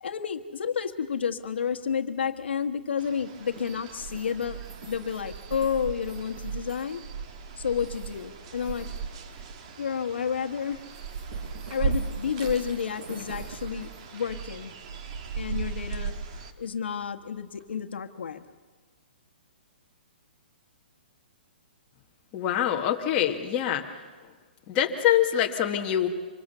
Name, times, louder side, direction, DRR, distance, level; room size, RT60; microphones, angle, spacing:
voice 1, 0.0-4.6 4.9-7.0 7.6-8.9 9.8-10.8 11.7-14.7 15.3-16.2 16.6-18.4, left 7 dB, 85° left, 7 dB, 1.4 m, -30 dB
sound 1, 1.3-17.7, right 2 dB, 50° right, 7.7 m, -50 dB
sound 2, 3.0-16.5, right 5 dB, 35° right, 1.5 m, -37 dB
voice 2, 22.3-23.8 24.7-26.1, left 10 dB, 20° left, 1 dB, 1.4 m, -24 dB
25.5 x 21.5 x 6.8 m, 1.4 s
hypercardioid pair, 170°, 6 cm